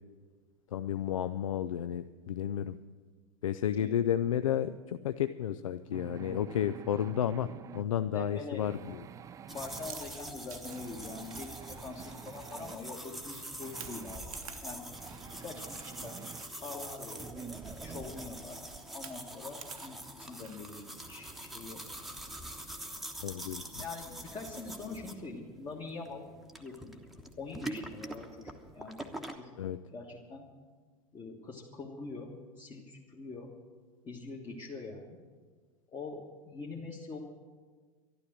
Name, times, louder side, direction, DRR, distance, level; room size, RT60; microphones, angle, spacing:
voice 1, 0.7-2.8 3.4-9.0 23.2-23.7 29.6-29.8, left 10 dB, 65° left, 12 dB, 0.4 m, -32 dB
sound 1, 5.9-7.9 8.6-9.9 10.7-12.8 13.6-14.2 14.9-16.4 17.2-18.4, right 8 dB, 15° right, 0.4 m, -48 dB
voice 2, 8.0-8.6 9.5-14.3 14.6-14.9 15.3-16.2 16.6-17.5 17.8-18.6 18.9-21.8 22.6-22.7 23.7-26.3 26.6-26.9 27.4-29.1 29.3-29.5 29.9-30.5 31.1-33.5 34.0-35.2 35.9-37.2, left 3 dB, 25° left, -1 dB, 1.5 m, -44 dB
sound 2, 9.5-29.4, right 1 dB, ahead, 1.1 m, -44 dB
Chewing mastication, 9.6-22.7, right 8 dB, 70° right, 0.9 m, -55 dB
12.0 x 12.0 x 7.6 m, 1.5 s
figure-of-eight pair, 85°, 18 cm